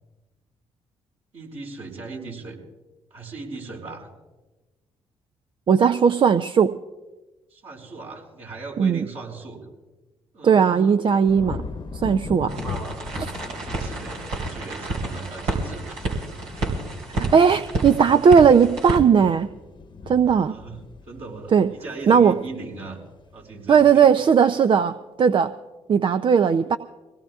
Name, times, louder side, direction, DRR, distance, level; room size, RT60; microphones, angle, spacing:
voice 1, 1.3-2.6 3.1-4.1 7.5-9.6 10.3-11.0 13.5-16.1 20.5-20.8 21.0-23.0 23.3-24.0, right 3 dB, 65° right, -2 dB, 5.1 m, -38 dB
voice 2, 5.7-6.7 8.8-9.1 10.4-11.6 11.9-12.5 13.2-13.3 17.3-19.5 20.1-20.6 21.5-21.7 22.1-22.4 23.7-25.5 25.9-26.8, right 6 dB, 45° right, 11 dB, 0.5 m, -17 dB
sound 1, 11.2-22.5 23.0-23.4, left 4 dB, 45° left, 1.0 m, -39 dB
sound 2, 12.5-19.0, right 2 dB, 80° right, 3.3 m, -30 dB
23.5 x 17.5 x 2.4 m, 1.1 s
hypercardioid pair, 50°, 12 cm